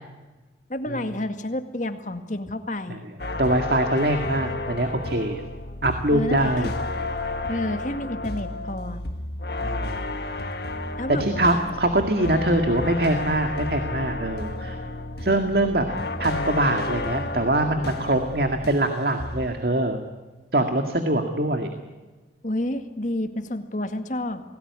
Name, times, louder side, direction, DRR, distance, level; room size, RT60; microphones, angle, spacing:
voice 1, 0.7-3.0 6.1-6.5 7.5-9.0 11.0-11.2 12.5-12.6 22.4-24.4, left 1 dB, 45° left, 8 dB, 2.0 m, -29 dB
sound 1, 3.2-18.9 19.2-19.6, left 2 dB, 60° left, 1.6 m, -32 dB
voice 2, 3.4-5.4 5.8-6.7 9.6-10.1 11.2-14.8 15.2-15.9 16.2-20.0 20.5-21.7, right 1 dB, 55° right, 6 dB, 2.1 m, -23 dB
28.0 x 19.0 x 9.7 m, 1.2 s
head